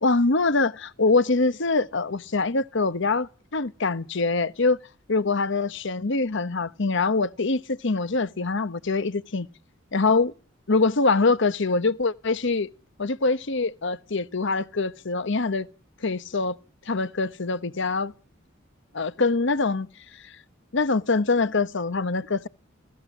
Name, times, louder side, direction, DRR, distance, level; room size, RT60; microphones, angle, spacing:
voice 1, 0.0-4.8 5.1-9.5 9.9-10.3 10.7-12.7 13.0-15.7 16.0-16.6 16.9-18.1 18.9-19.9 20.7-22.5, left 3 dB, 65° left, 1.1 m, -24 dB
28.0 x 18.0 x 7.3 m
head